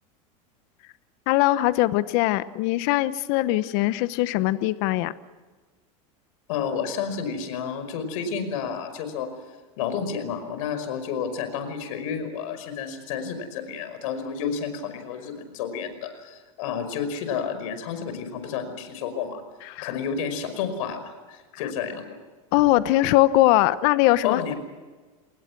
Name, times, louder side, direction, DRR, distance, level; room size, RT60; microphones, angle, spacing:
voice 1, 1.3-5.1 19.7-19.9 22.5-24.5, left 16 dB, 60° left, 14 dB, 1.1 m, -21 dB
voice 2, 6.5-9.3 9.8-19.4 19.8-22.1 24.2-24.5, left 7 dB, 75° left, 9 dB, 5.4 m, -30 dB
29.5 x 20.5 x 6.1 m, 1.3 s
supercardioid pair, 130°, 17 cm